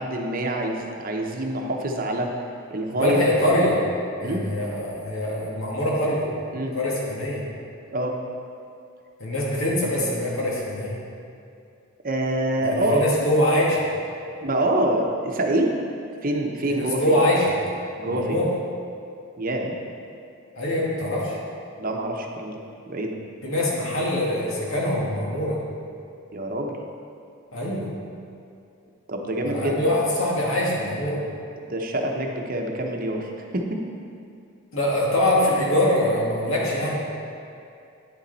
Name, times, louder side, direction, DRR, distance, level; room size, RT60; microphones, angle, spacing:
voice 1, 0.0-2.3 2.7-3.2 4.2-4.5 6.5-6.7 7.9-8.2 12.0-13.0 14.4-15.8 16.2-17.1 18.0-18.4 19.4-19.7 21.8-22.6 22.9-23.2 26.3-26.7 29.1-29.8 31.6-33.8, right 1 dB, 45° right, 2 dB, 0.8 m, -26 dB
voice 2, 2.9-3.8 4.2-6.2 6.7-7.4 9.2-11.0 12.6-13.8 16.7-17.5 18.0-18.5 20.6-21.4 23.4-25.6 27.5-27.9 29.4-31.2 34.7-37.0, left 1 dB, 80° left, -4 dB, 2.0 m, -23 dB
9.7 x 7.2 x 4.1 m, 2.5 s
head